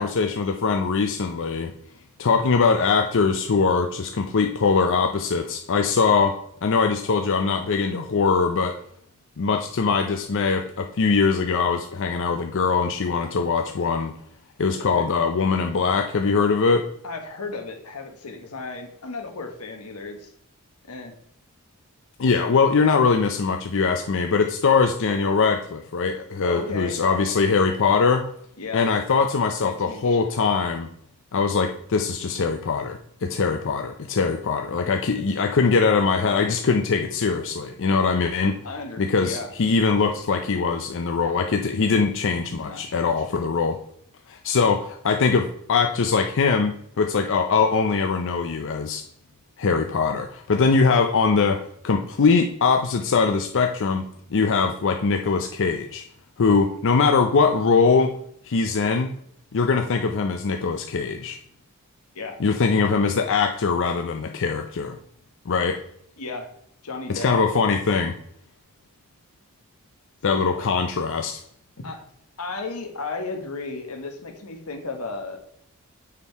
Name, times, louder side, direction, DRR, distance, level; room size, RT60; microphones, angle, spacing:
voice 1, 0.0-1.7 2.2-8.8 9.4-14.1 14.6-16.9 22.2-28.3 28.7-30.9 31.3-38.6 39.0-43.8 44.3-49.0 49.6-56.0 56.4-58.1 58.4-59.1 59.5-61.4 62.4-65.0 65.5-65.8 67.1-68.2 70.2-71.4, left 4 dB, 60° left, 5 dB, 0.5 m, -22 dB
voice 2, 14.8-15.1 17.0-20.3 20.9-21.1 25.2-25.5 26.4-27.4 28.6-28.9 29.6-30.3 38.6-39.5 42.5-43.2 62.1-62.4 66.2-66.5 66.8-67.3 70.3-70.7 71.8-72.0 72.4-75.4, left 3 dB, 90° left, 4 dB, 1.5 m, -34 dB
6.7 x 5.5 x 4.6 m, 0.67 s
head